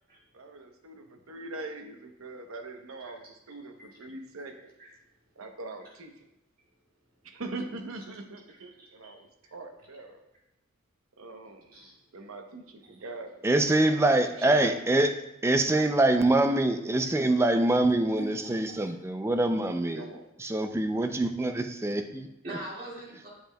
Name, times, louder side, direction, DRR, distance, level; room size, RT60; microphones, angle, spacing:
voice 1, 0.3-4.7 5.4-6.3 7.2-10.2 11.2-13.5 14.1-15.1 19.9-20.3, right 2 dB, 90° right, 5 dB, 0.8 m, -42 dB
voice 2, 4.5-4.9 8.5-9.1 11.7-11.9 13.0-13.1 18.2-18.9 22.4-23.3, right 1 dB, 45° right, -4 dB, 2.0 m, -43 dB
voice 3, 13.4-15.1 15.4-20.0 20.4-22.3, right 2 dB, 15° right, 7 dB, 0.3 m, -24 dB
7.8 x 6.6 x 2.2 m, 0.88 s
head